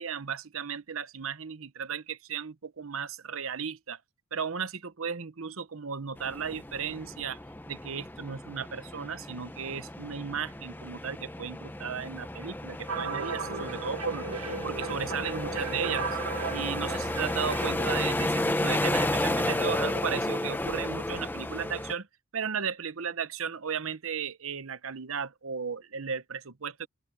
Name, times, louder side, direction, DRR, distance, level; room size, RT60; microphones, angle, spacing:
voice 1, 0.0-4.0 4.3-7.4 7.7-14.3 14.6-16.1 16.5-22.1 22.3-26.9, right 6 dB, 70° right, 0.9 m, -35 dB
sound 1, 6.2-21.9, left 1 dB, 10° left, 0.7 m, -33 dB
sound 2, 12.9-17.9, right 4 dB, 90° right, 1.9 m, -36 dB
open air
head